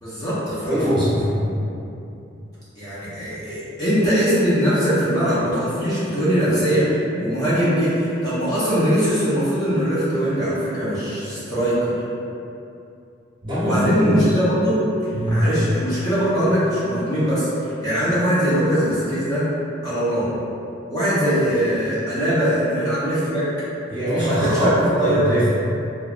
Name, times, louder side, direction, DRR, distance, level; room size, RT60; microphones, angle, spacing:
voice 1, 0.0-0.8 2.8-11.9 13.6-14.8 15.2-17.5 17.8-19.5 19.8-20.2 20.9-23.5 24.2-25.4, equal, 20° left, -12 dB, 0.6 m, -21 dB
voice 2, 0.6-1.5 13.4-14.1 15.1-15.5 23.9-25.5, equal, 25° right, -11 dB, 0.9 m, -21 dB
3.0 x 2.3 x 2.4 m, 2.7 s
head